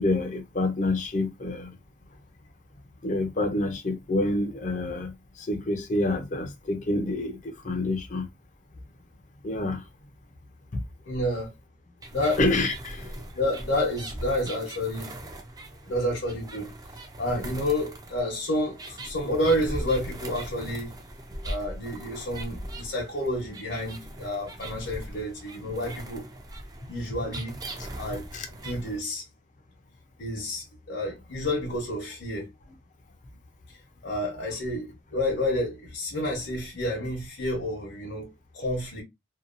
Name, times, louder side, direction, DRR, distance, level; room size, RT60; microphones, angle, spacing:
voice 1, 0.0-1.8 3.0-8.3 9.4-9.9 10.7-10.8 12.4-13.2 28.3-28.5, left 2 dB, 40° left, 0.5 m, -28 dB
voice 2, 11.0-11.5 12.1-12.4 13.3-15.1 15.9-16.7 17.2-20.9 21.4-26.3 26.9-29.2 30.2-32.5 33.7-33.8 34.0-39.0, left 1 dB, 70° left, 1.0 m, -30 dB
sound 1, 12.0-29.0, right 1 dB, 20° right, 0.4 m, -40 dB
2.7 x 2.2 x 2.5 m
head